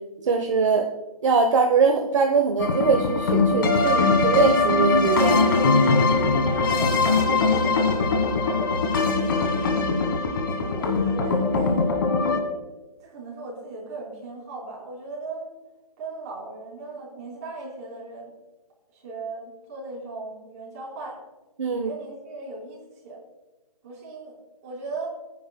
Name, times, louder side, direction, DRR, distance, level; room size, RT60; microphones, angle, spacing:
voice 1, 0.2-0.9 1.2-5.5 21.6-21.9, right 5 dB, 50° right, 4 dB, 1.0 m, -22 dB
sound 1, 2.6-12.4, left 3 dB, 35° left, 1.5 m, -21 dB
voice 2, 6.7-7.9 8.3-8.7 9.3-9.9 10.6-12.2 13.0-15.5 16.0-18.3 18.9-21.2 21.7-22.8 23.0-23.2 23.8-24.3 24.6-25.1, right 3 dB, 25° right, -4 dB, 4.2 m, -38 dB
22.5 x 9.8 x 2.2 m, 1.1 s
hypercardioid pair, 175°, 19 cm